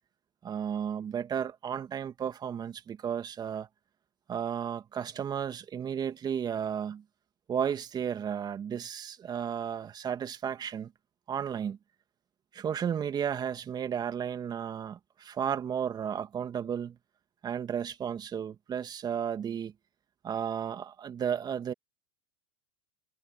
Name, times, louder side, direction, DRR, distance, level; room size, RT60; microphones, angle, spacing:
voice 1, 0.4-3.7 4.3-7.0 7.5-10.9 11.3-11.8 12.5-17.0 17.4-19.7 20.2-21.7, right 8 dB, 30° right, 2.3 m, -33 dB
hypercardioid pair, 95°, 14 cm